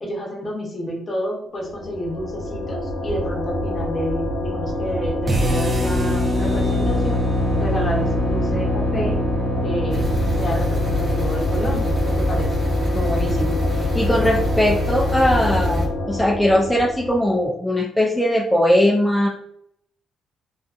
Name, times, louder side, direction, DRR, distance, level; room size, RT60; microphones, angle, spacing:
voice 1, 0.0-7.2 7.6-9.2 9.6-10.1 10.4-12.6, equal, 35° left, -1 dB, 0.8 m, -29 dB
sound 1, 1.6-17.5, left 1 dB, 85° left, 0.7 m, -27 dB
sound 2, 5.3-11.4, equal, 30° right, 0.7 m, -24 dB
sound 3, 9.9-15.9, left 1 dB, 45° right, 1.1 m, -24 dB
voice 2, 12.9-13.6 13.9-19.3, equal, 5° left, -2 dB, 0.3 m, -20 dB
2.5 x 2.3 x 2.4 m, 0.75 s
cardioid pair, 90°, 0 cm